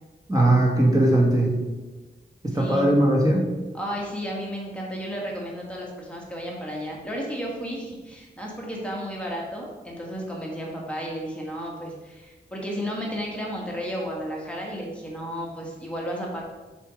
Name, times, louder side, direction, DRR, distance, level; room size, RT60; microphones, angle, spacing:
voice 1, 0.3-1.6 2.4-3.5, right 1 dB, 20° right, -3 dB, 1.3 m, -19 dB
voice 2, 2.5-2.9 3.7-16.4, equal, 5° left, -3 dB, 1.4 m, -33 dB
6.8 x 4.6 x 4.8 m, 1.2 s
wide cardioid pair, 110°, 19 cm